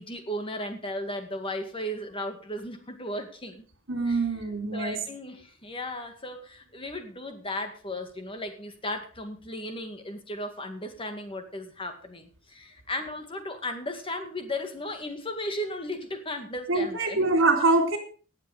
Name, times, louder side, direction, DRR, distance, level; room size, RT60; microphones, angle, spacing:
voice 1, 0.0-3.6 4.0-4.2 4.7-17.2, left 1 dB, 25° left, 6 dB, 2.1 m, -35 dB
voice 2, 3.9-4.9 16.7-18.0, right 3 dB, 70° right, 5 dB, 3.8 m, -24 dB
18.5 x 7.4 x 5.0 m, 0.39 s
head